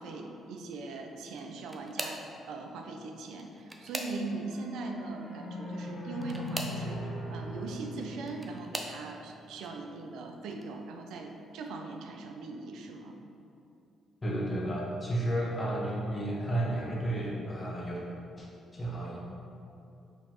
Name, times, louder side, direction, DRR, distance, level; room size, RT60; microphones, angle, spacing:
voice 1, 0.0-2.2 2.5-13.2, right 3 dB, 85° right, 3 dB, 0.3 m, -40 dB
sound 1, 1.3-2.3 3.3-4.5 6.1-6.8 7.9-9.0 9.7-10.1 10.5-10.7 12.0-12.1, right 1 dB, 15° right, 0.4 m, -40 dB
sound 2, 3.7-9.2, equal, 85° left, 0.7 m, -40 dB
voice 2, 14.2-18.0 18.4-18.5 18.7-19.2, right 1 dB, 25° left, -5 dB, 0.9 m, -32 dB
4.3 x 3.0 x 2.9 m, 2.7 s
cardioid pair, 90°, 0 cm